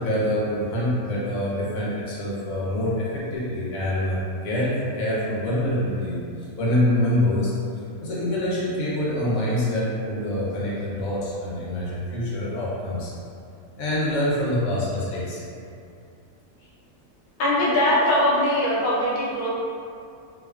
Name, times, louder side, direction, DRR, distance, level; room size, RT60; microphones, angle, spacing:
voice 1, 0.0-6.2 6.6-13.1 13.8-15.4, left 1 dB, 90° left, -6 dB, 1.1 m, -25 dB
voice 2, 17.4-19.5, left 1 dB, 55° left, -7 dB, 0.6 m, -21 dB
2.6 x 2.3 x 2.3 m, 2.4 s
omnidirectional pair, 1.4 m